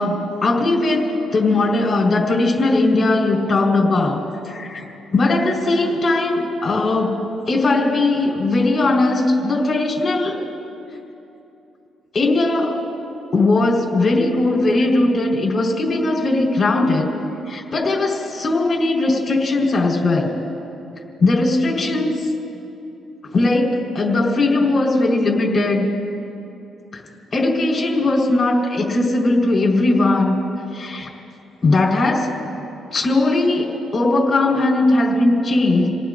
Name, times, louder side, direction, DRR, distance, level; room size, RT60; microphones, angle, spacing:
voice 1, 0.0-4.9 5.1-7.2 7.5-10.4 12.1-12.8 13.3-17.1 17.5-20.3 21.2-22.3 23.3-25.9 27.3-30.4 30.7-31.1 31.6-32.3 32.9-35.9, left 2 dB, 40° left, -2 dB, 4.4 m, -19 dB
29.5 x 18.5 x 2.6 m, 2.8 s
cardioid pair, 90°, 0 cm